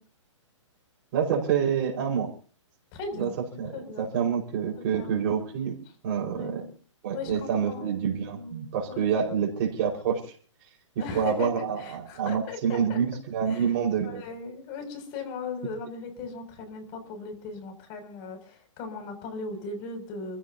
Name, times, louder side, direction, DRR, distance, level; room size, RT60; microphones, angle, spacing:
voice 1, 1.1-2.3 3.2-3.3 3.6-5.8 6.0-6.7 7.0-10.3 11.1-14.2, right 7 dB, 40° right, 2 dB, 5.2 m, -27 dB
voice 2, 2.9-3.4 3.7-4.1 4.9-5.1 6.3-6.7 7.1-7.9 8.3-9.1 11.0-13.0 13.5-13.7 14.0-20.4, left 4 dB, 35° left, 5 dB, 7.0 m, -38 dB
29.0 x 16.5 x 2.9 m, 0.40 s
hypercardioid pair, 145°, 16 cm